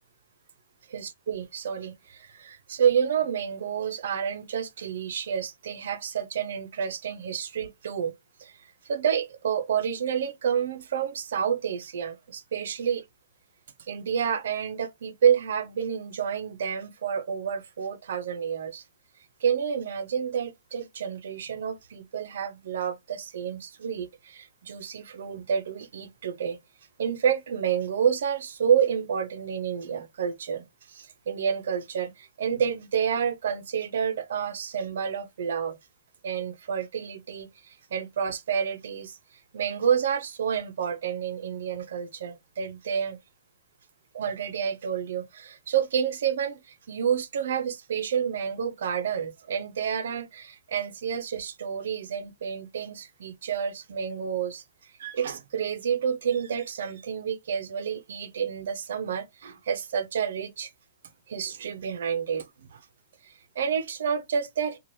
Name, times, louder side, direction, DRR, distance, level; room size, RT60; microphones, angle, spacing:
voice 1, 0.9-8.1 8.4-8.5 8.8-13.0 13.9-18.8 19.4-26.6 27.0-35.8 36.2-39.2 39.5-43.2 44.1-54.6 55.0-60.7 61.3-62.8 63.2-64.8, right 7 dB, 75° right, 0.7 m, -29 dB
3.1 x 2.4 x 2.7 m
hypercardioid pair, 155°, 0 cm